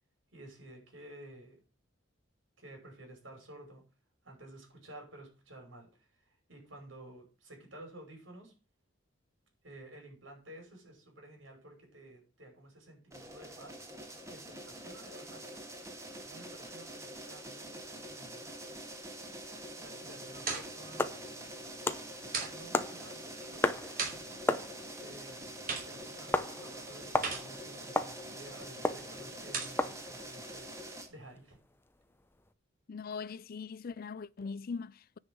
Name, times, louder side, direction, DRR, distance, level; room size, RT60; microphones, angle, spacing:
voice 1, 0.3-1.6 2.6-3.8 4.2-8.5 9.6-13.8 14.3-15.7 16.2-18.4 19.8-21.1 22.2-24.2 25.0-30.7 31.1-31.6, right 1 dB, 70° right, 5.8 m, -53 dB
sound 1, 13.1-31.1, right 1 dB, 15° right, 1.9 m, -46 dB
sound 2, 19.9-30.0, right 4 dB, 50° right, 3.4 m, -43 dB
sound 3, 21.0-32.5, left 2 dB, 10° left, 0.8 m, -36 dB
voice 2, 32.9-35.2, left 5 dB, 50° left, 0.4 m, -41 dB
9.9 x 5.7 x 8.0 m
head